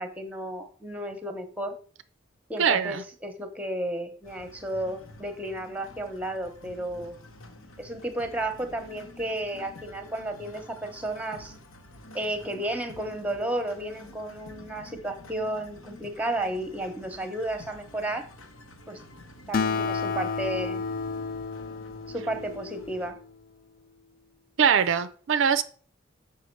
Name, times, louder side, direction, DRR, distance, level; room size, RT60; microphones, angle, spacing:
voice 1, 0.0-1.7 2.5-7.1 7.8-11.5 12.1-18.3 18.9-19.0 19.5-20.9 22.1-23.2, right 1 dB, 5° right, 0.9 m, -33 dB
voice 2, 2.6-3.0 24.6-25.6, right 7 dB, 65° right, 0.4 m, -22 dB
sound 1, 4.2-23.1, left 1 dB, 90° left, 1.0 m, -49 dB
Acoustic guitar, 19.5-23.3, left 5 dB, 45° left, 0.3 m, -31 dB
6.3 x 5.8 x 4.5 m
head